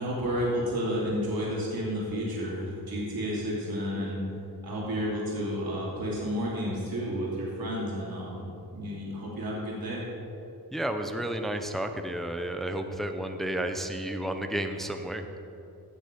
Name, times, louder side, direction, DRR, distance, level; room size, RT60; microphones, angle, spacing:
voice 1, 0.0-4.3 4.6-10.0, equal, 70° right, -5 dB, 2.9 m, -31 dB
voice 2, 10.7-15.3, right 1 dB, ahead, 6 dB, 0.6 m, -32 dB
16.5 x 6.6 x 5.2 m, 2.8 s
wide cardioid pair, 140°, 37 cm